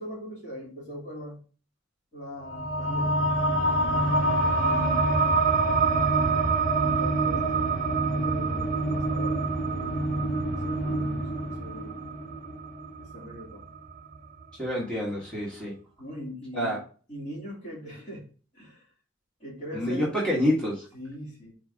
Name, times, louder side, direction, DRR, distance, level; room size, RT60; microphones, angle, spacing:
voice 1, 0.0-1.4 2.1-3.2 4.6-5.3 6.1-6.5 6.8-7.8 8.1-9.8 10.1-11.9 13.1-13.6 16.0-16.8 17.1-18.2 18.5-18.8 19.4-20.1 20.9-21.5, equal, 40° left, -4 dB, 3.1 m, -41 dB
sound 1, 2.4-13.3, equal, 65° left, 1.7 m, -28 dB
sound 2, 3.3-14.4, right 7 dB, 40° right, 0.6 m, -29 dB
voice 2, 14.6-15.7 16.5-16.8 19.7-20.9, equal, 5° left, -6 dB, 1.6 m, -27 dB
4.8 x 4.4 x 5.2 m, 0.39 s
head